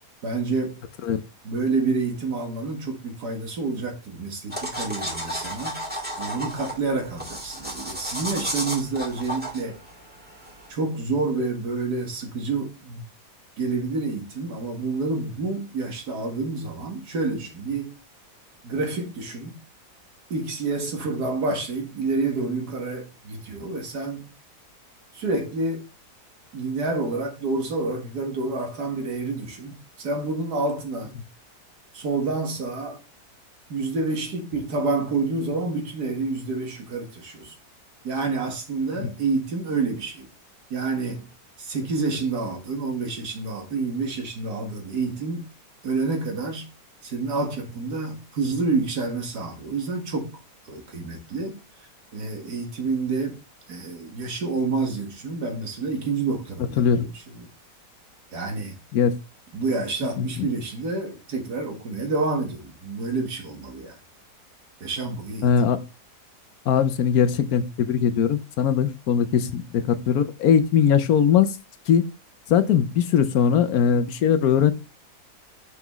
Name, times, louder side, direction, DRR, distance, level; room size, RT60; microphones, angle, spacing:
voice 1, 0.2-0.8 1.4-5.8 6.2-9.8 10.7-13.0 13.6-18.0 18.6-19.6 20.3-24.3 25.1-25.9 26.5-31.1 31.9-33.0 33.7-37.6 38.0-40.3 40.7-41.3 41.6-45.5 45.8-46.7 47.0-50.4 50.7-51.6 52.1-53.4 53.7-57.5 58.3-58.8 59.5-64.0 64.8-65.5, right 3 dB, 70° right, 2.1 m, -28 dB
sound 1, 4.5-10.7, equal, 5° right, 1.7 m, -33 dB
voice 2, 60.2-60.5 65.4-65.8 66.7-71.5 71.9-72.0 72.5-74.7, left 8 dB, 70° left, 1.2 m, -20 dB
6.1 x 5.7 x 3.1 m
omnidirectional pair, 1.8 m